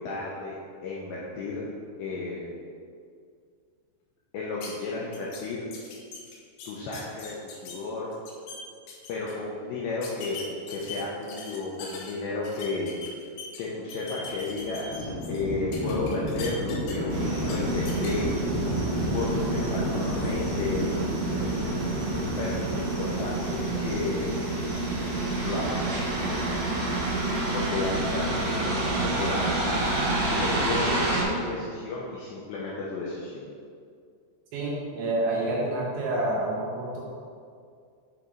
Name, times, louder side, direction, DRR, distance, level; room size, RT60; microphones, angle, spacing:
voice 1, 0.0-1.6 2.0-2.5 4.3-5.7 6.7-8.1 9.1-10.4 10.7-13.0 13.6-18.3 19.1-20.8 22.4-24.4 25.4-26.7 27.5-29.8 30.1-33.4, left 3 dB, 90° left, -5 dB, 2.5 m, -33 dB
sound 1, 4.6-4.7 5.1-5.4 5.7-7.7 8.1-8.6 8.9-9.3 10.0-12.1 12.4-13.6 13.9-15.4 15.7-17.1 17.4-17.5 17.9-18.1, left 5 dB, 75° left, 2.9 m, -41 dB
Livestock farm animals working animals, 14.2-23.2, equal, 50° left, 2.6 m, -32 dB
sound 2, 17.1-31.2, right 2 dB, 60° right, 2.1 m, -28 dB
voice 2, 34.5-37.0, right 1 dB, 80° right, -4 dB, 2.9 m, -28 dB
8.8 x 4.0 x 4.5 m, 2.2 s
omnidirectional pair, 5.9 m